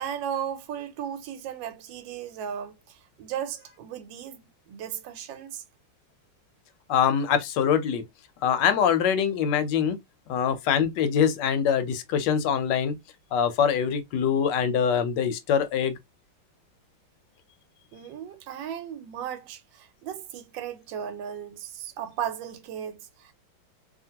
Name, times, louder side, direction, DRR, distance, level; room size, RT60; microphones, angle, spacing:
voice 1, 0.0-4.4 4.7-5.6 17.9-23.3, right 9 dB, 85° right, 1.3 m, -36 dB
voice 2, 6.9-8.0 8.4-10.0 10.3-12.9 13.3-16.0, left 8 dB, 75° left, 1.2 m, -24 dB
2.8 x 2.4 x 2.7 m
omnidirectional pair, 2.0 m